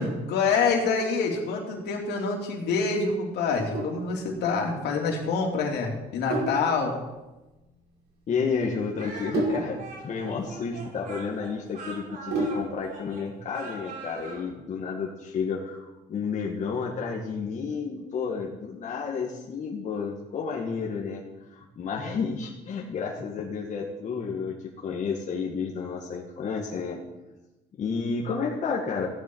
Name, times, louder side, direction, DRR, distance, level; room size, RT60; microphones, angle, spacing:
voice 1, 0.0-7.0, left 4 dB, 75° left, 0 dB, 3.1 m, -26 dB
Sink (filling or washing), 3.4-12.9, right 2 dB, 75° right, 5.2 m, -34 dB
voice 2, 8.3-21.2 21.5-24.6 24.8-27.0 27.8-29.1, left 5 dB, 45° left, -2 dB, 1.8 m, -31 dB
Speech, 9.0-14.5, right 3 dB, 55° right, 4.5 m, -41 dB
15.5 x 10.5 x 4.7 m, 1.1 s
cardioid pair, 110°, 17 cm